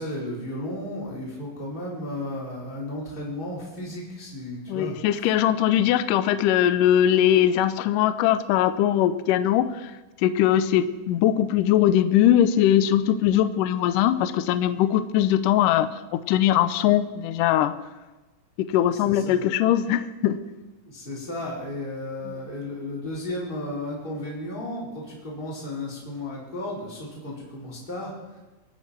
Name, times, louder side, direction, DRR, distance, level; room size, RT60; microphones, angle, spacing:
voice 1, 0.0-5.3 19.0-19.4 20.8-28.4, left 1 dB, 15° left, -5 dB, 4.2 m, -34 dB
voice 2, 4.7-9.9 10.2-15.9 16.3-17.7 18.7-20.4, left 11 dB, 85° left, 11 dB, 1.9 m, -21 dB
24.5 x 9.1 x 4.5 m, 1.1 s
omnidirectional pair, 4.6 m